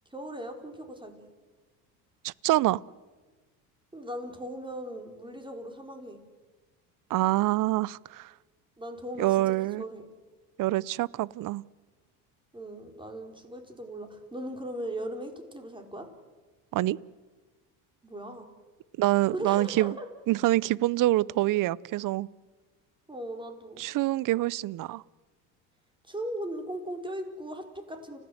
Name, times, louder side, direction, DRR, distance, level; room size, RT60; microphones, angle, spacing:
voice 1, 0.1-1.3 3.9-6.2 8.8-10.1 12.5-16.1 18.0-18.5 19.3-20.1 23.1-23.8 26.1-28.2, right 1 dB, 10° right, 4 dB, 4.4 m, -38 dB
voice 2, 2.2-2.8 7.1-8.3 9.2-9.8 10.6-11.6 16.7-17.0 19.0-19.9 20.3-22.3 23.8-25.0, right 16 dB, 45° right, 24 dB, 0.6 m, -26 dB
30.0 x 15.5 x 8.0 m, 1.3 s
supercardioid pair, 90°, 44 cm